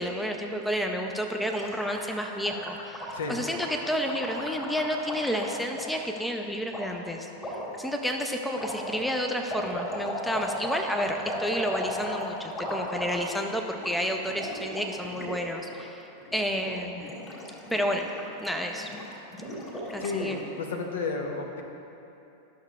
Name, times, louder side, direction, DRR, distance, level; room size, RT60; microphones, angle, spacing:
voice 1, 0.0-17.1 17.7-18.1 18.4-18.9 19.9-20.5, equal, ahead, 3 dB, 0.5 m, -31 dB
Gurgling, 1.4-6.1 6.7-6.8 7.4-7.8 8.5-13.5 13.7-13.9 14.2-15.4 15.6-15.8 16.2-16.7 17.0-20.4, left 1 dB, 20° left, 1.8 m, -36 dB
voice 2, 20.0-21.6, left 4 dB, 60° left, 3 dB, 0.7 m, -32 dB
12.0 x 6.3 x 2.4 m, 2.9 s
figure-of-eight pair, 90°, 0 cm